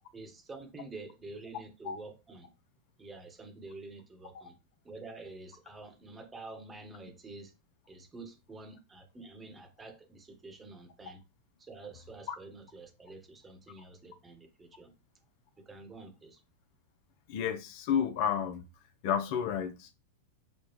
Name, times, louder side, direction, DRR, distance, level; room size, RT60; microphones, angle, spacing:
voice 1, 0.1-2.5 3.0-4.5 4.8-7.5 7.9-11.2 11.6-14.9 15.6-16.4, right 3 dB, 15° right, 1.1 m, -48 dB
voice 2, 17.3-18.6 19.0-19.9, left 8 dB, 45° left, 0.5 m, -31 dB
6.3 x 2.3 x 3.0 m
figure-of-eight pair, 90°, 0 cm